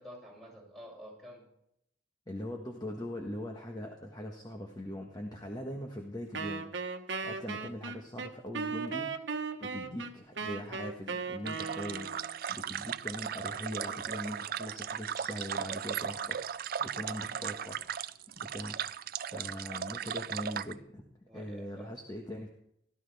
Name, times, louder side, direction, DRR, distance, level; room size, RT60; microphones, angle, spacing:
voice 1, 0.0-1.5 17.0-17.5 21.3-21.9, equal, ahead, -4 dB, 6.8 m, -50 dB
voice 2, 2.3-9.1 9.6-12.1 12.5-16.4 16.8-17.8 18.4-18.8 19.2-22.5, equal, 20° left, 1 dB, 1.4 m, -41 dB
Wind instrument woodwind instrument, 6.3-12.4, right 4 dB, 70° right, 1.2 m, -37 dB
sound 1, 11.5-20.7, right 8 dB, 50° right, 0.4 m, -37 dB
17.0 x 13.5 x 3.5 m, 0.76 s
head